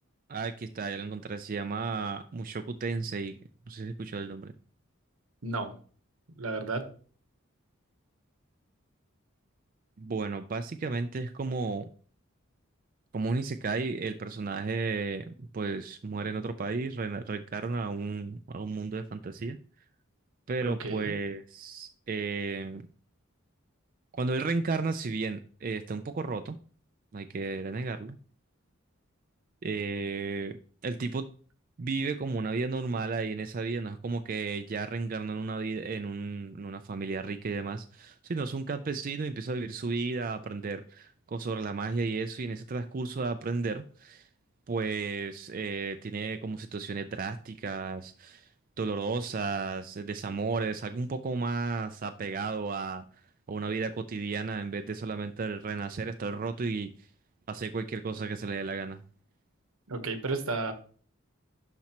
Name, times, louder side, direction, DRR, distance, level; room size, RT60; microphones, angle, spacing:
voice 1, 0.3-3.4 3.7-4.5 10.0-11.9 13.1-19.6 20.5-22.9 24.1-26.6 27.1-28.2 29.6-30.5 30.8-31.2 31.8-44.3 44.7-48.5 48.8-53.0 53.5-57.1 57.5-59.0, right 4 dB, 40° right, 8 dB, 0.4 m, -33 dB
voice 2, 5.4-5.7 6.4-6.8 20.7-21.1 59.9-60.7, right 3 dB, 80° right, 8 dB, 1.1 m, -32 dB
11.5 x 4.3 x 2.9 m, 0.43 s
head